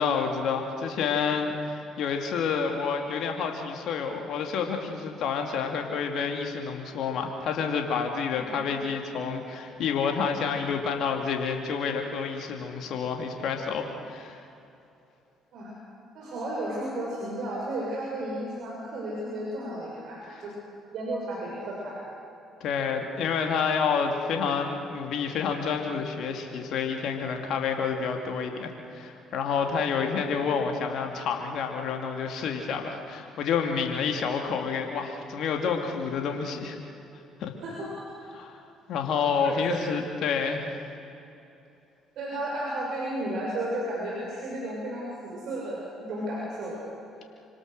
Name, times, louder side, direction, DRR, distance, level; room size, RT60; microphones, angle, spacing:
voice 1, 0.0-14.4 22.6-36.8 37.4-37.5 38.3-38.6 38.9-40.7, left 6 dB, 65° left, 3 dB, 2.5 m, -29 dB
voice 2, 8.3-8.8 15.5-15.7 16.1-20.5 20.9-22.0 37.6-38.1 39.4-39.9 42.2-46.8, right 1 dB, 65° right, -4 dB, 6.1 m, -33 dB
26.5 x 25.5 x 6.7 m, 2.8 s
hypercardioid pair, 55°, 0 cm